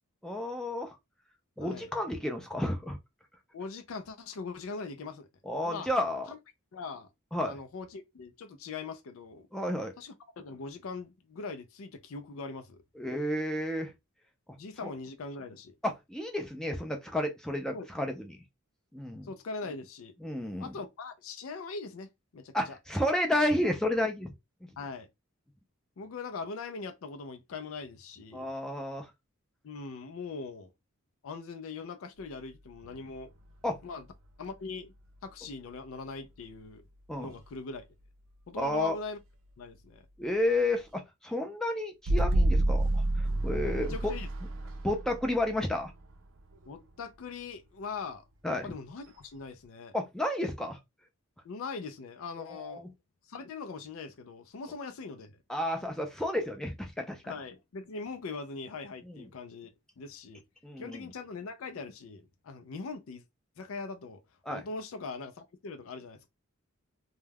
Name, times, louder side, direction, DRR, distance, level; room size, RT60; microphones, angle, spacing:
voice 1, 0.2-1.0 1.6-3.0 5.5-6.3 7.3-7.6 9.5-9.9 13.0-13.9 14.8-14.9 15.8-18.4 18.9-19.3 20.2-20.7 22.5-24.3 28.3-29.1 33.6-33.8 37.1-37.3 38.6-39.0 40.2-44.1 44.8-45.9 48.4-48.7 49.9-50.8 52.5-52.9 55.5-57.3 59.0-59.3 60.6-61.1 64.5-64.6, left 1 dB, 5° left, 0.4 m, -31 dB
voice 2, 3.5-5.3 5.6-5.9 6.3-6.4 6.7-7.1 7.4-9.5 10.0-12.8 14.6-15.7 17.7-18.1 19.2-20.1 20.6-22.8 24.8-25.1 26.0-28.5 29.6-30.7 31.2-33.3 33.8-34.0 34.4-34.9 35.2-36.8 37.2-37.8 38.5-39.2 39.6-40.1 43.8-44.3 46.7-48.2 48.6-49.9 51.4-52.8 53.3-55.3 57.2-59.7 60.0-60.4 60.8-63.2 63.6-64.2 64.5-66.3, left 4 dB, 75° left, 0.4 m, -41 dB
sound 1, 32.8-33.8 35.5-35.6 42.1-46.7, right 1 dB, 65° right, 0.4 m, -29 dB
2.2 x 2.1 x 3.3 m
head